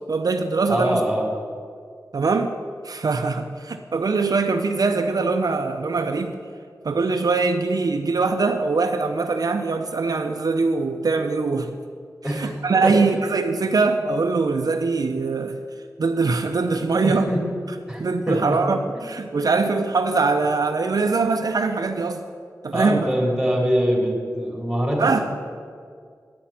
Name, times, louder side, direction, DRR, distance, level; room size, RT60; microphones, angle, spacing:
voice 1, 0.1-1.0 2.1-2.5 2.8-6.4 6.8-11.8 12.3-15.6 16.0-17.3 18.0-22.2 22.6-23.1 25.0-25.2, right 4 dB, 65° right, 6 dB, 0.5 m, -22 dB
voice 2, 0.7-1.3 12.2-13.1 17.0-17.4 17.9-18.6 22.7-25.2, equal, ahead, -1 dB, 3.2 m, -24 dB
10.5 x 5.8 x 8.8 m, 2.1 s
wide cardioid pair, 65°, 7 cm